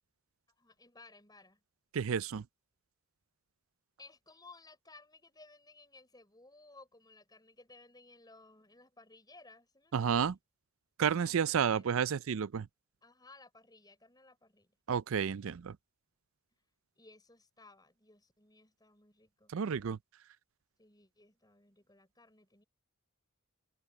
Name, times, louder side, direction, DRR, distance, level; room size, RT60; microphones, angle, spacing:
voice 1, 0.5-1.6 4.0-10.3 11.2-12.1 13.0-14.7 17.0-19.6 20.8-22.6, left 3 dB, 15° left, 6.0 m, -59 dB
voice 2, 1.9-2.5 9.9-10.4 11.0-12.7 14.9-15.8 19.5-20.0, right 7 dB, 65° right, 0.4 m, -31 dB
open air
head